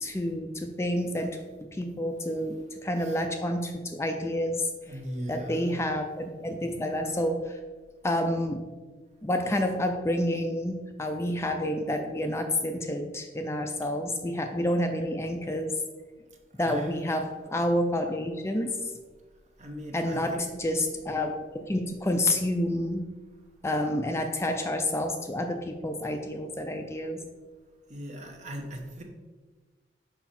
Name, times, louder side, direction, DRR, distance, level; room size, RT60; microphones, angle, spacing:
voice 1, 0.0-1.4 1.7-5.0 5.3-7.6 8.0-8.6 9.2-15.7 16.6-18.8 19.9-20.3 20.6-23.0 23.6-27.2, left 1 dB, 15° left, 5 dB, 0.4 m, -29 dB
voice 2, 4.9-5.8 16.6-16.9 19.6-20.4 27.9-29.0, equal, 40° right, 2 dB, 1.0 m, -39 dB
5.9 x 5.0 x 4.3 m, 1.3 s
head